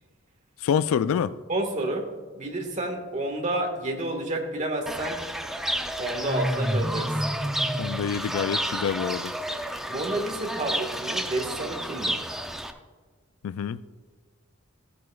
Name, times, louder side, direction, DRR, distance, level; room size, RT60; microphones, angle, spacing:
voice 1, 0.6-1.3 7.8-9.3 13.4-13.8, left 7 dB, 85° left, 0.3 m, -26 dB
voice 2, 1.5-2.1 2.3-5.2 6.0-7.2 9.9-12.3, right 1 dB, 35° right, 1.5 m, -30 dB
Fowl / Bird, 4.9-12.7, equal, ahead, 0.5 m, -30 dB
15.0 x 9.3 x 2.3 m
head